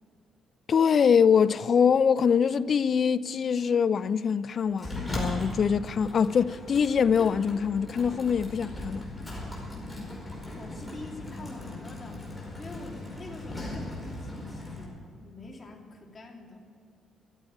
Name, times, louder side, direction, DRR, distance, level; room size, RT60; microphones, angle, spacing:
voice 1, 0.7-9.0, left 6 dB, 50° left, 0.5 m, -24 dB
Sliding door, 4.8-14.9, left 1 dB, 5° left, 4.8 m, -38 dB
voice 2, 10.5-12.2 12.6-16.7, left 2 dB, 30° left, 2.8 m, -45 dB
14.0 x 8.5 x 9.4 m
cardioid pair, 90°, 0 cm